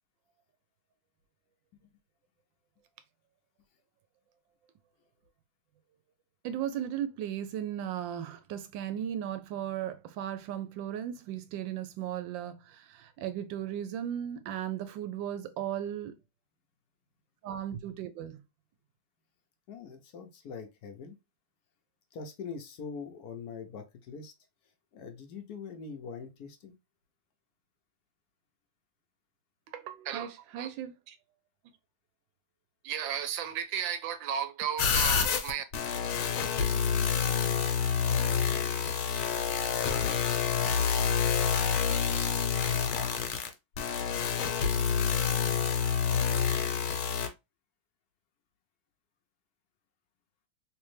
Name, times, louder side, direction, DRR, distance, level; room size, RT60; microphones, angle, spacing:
voice 1, 6.4-16.2 17.4-18.4 29.7-31.2 32.8-35.6, right 10 dB, 75° right, 1.2 m, -35 dB
voice 2, 19.7-21.2 22.1-24.3 24.9-26.7, left 5 dB, 65° left, 1.0 m, -43 dB
sound 1, 34.8-47.3, left 7 dB, 85° left, 1.6 m, -28 dB
3.4 x 3.1 x 3.1 m
omnidirectional pair, 2.2 m